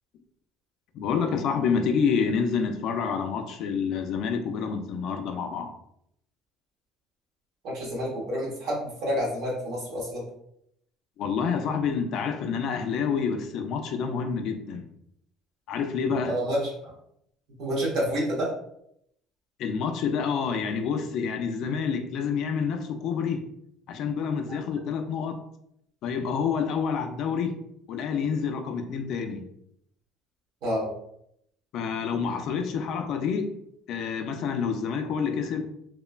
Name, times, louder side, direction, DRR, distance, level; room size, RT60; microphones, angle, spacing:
voice 1, 0.9-5.7 11.2-14.9 15.7-16.4 19.6-23.5 23.9-25.4 26.0-27.6 27.9-29.4 31.7-33.5 33.9-35.7, left 6 dB, 55° left, 5 dB, 0.3 m, -28 dB
voice 2, 7.6-10.2 16.2-16.9 17.6-18.5 24.5-24.6 30.6-30.9, equal, 60° right, -4 dB, 1.1 m, -29 dB
3.0 x 2.1 x 2.4 m, 0.74 s
cardioid pair, 155°, 0 cm